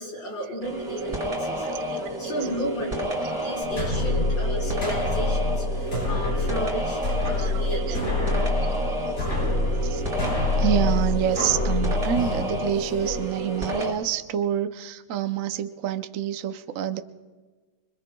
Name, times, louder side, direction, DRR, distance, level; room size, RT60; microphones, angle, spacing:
voice 1, 0.0-8.3, equal, 70° left, -2 dB, 4.5 m, -34 dB
sound 1, 0.6-13.9, right 1 dB, 30° right, 3.0 m, -30 dB
voice 2, 1.6-2.3 7.2-8.0 8.3-8.5 9.8-10.0 10.6-17.0, right 10 dB, 80° right, 9 dB, 0.7 m, -28 dB
sound 2, 3.6-13.1, left 2 dB, 45° left, 6.3 m, -26 dB
25.0 x 22.5 x 2.3 m, 1.4 s
omnidirectional pair, 2.2 m